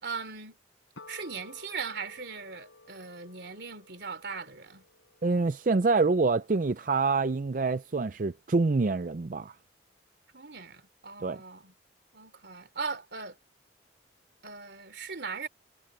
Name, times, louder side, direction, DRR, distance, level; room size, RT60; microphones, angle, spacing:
voice 1, 0.0-0.6 1.1-4.8 10.3-11.7 12.1-13.4 14.4-15.5, right 5 dB, 60° right, 3.2 m, -39 dB
sound 1, 1.0-7.5, left 2 dB, 90° left, 6.9 m, -55 dB
voice 2, 5.2-9.5 11.2-11.4, right 3 dB, 45° right, 0.5 m, -26 dB
head